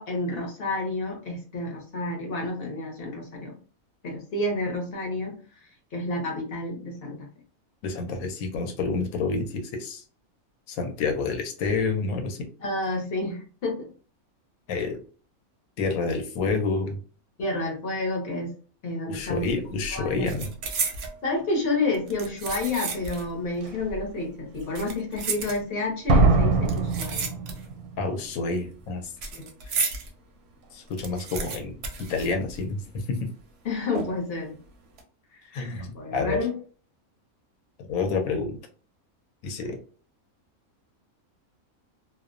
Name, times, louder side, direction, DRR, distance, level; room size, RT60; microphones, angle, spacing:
voice 1, 0.0-3.6 4.0-5.4 5.9-7.3 12.6-13.9 14.7-14.8 17.4-18.5 18.8-19.4 19.9-20.4 21.2-27.3 29.3-29.5 33.6-34.6 35.4-35.5 35.9-36.6, left 2 dB, 50° left, 0 dB, 0.8 m, -30 dB
voice 2, 7.8-10.0 10.7-12.4 14.7-14.9 15.8-17.0 19.1-20.5 28.0-29.1 29.7-29.8 30.7-31.7 32.1-32.8 33.1-33.2 35.5-36.4 37.9-38.6 39.4-39.8, left 4 dB, 80° left, 4 dB, 1.0 m, -28 dB
sound 1, 19.2-19.5 19.8-21.2 21.9-23.3 23.6-23.7 24.5-26.0 26.6-27.9 28.1-30.1 30.5-30.6 30.8-32.9 33.2-33.3 33.9-34.4 34.8-35.0, right 4 dB, 65° right, 0.7 m, -33 dB
Slam, 22.9-23.0 23.6-24.0 26.1-28.0 28.2-28.3, right 3 dB, 85° right, 1.0 m, -22 dB
2.5 x 2.0 x 2.4 m, 0.40 s
omnidirectional pair, 1.5 m